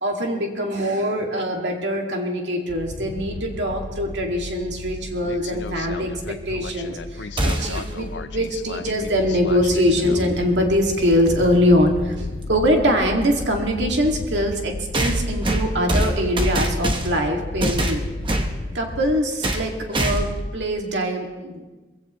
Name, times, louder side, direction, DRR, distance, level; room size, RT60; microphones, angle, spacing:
voice 1, 0.0-18.1 18.7-21.6, equal, 90° right, 1 dB, 2.2 m, -23 dB
sound 1, 2.7-19.2, left 3 dB, 90° left, 0.7 m, -34 dB
sound 2, 7.4-7.9 10.0-10.1 11.3-11.4 14.9-17.3 17.6-18.5 19.4-19.7 19.9-20.4, right 1 dB, 30° right, 1.1 m, -23 dB
21.0 x 16.0 x 3.1 m, 1.2 s
head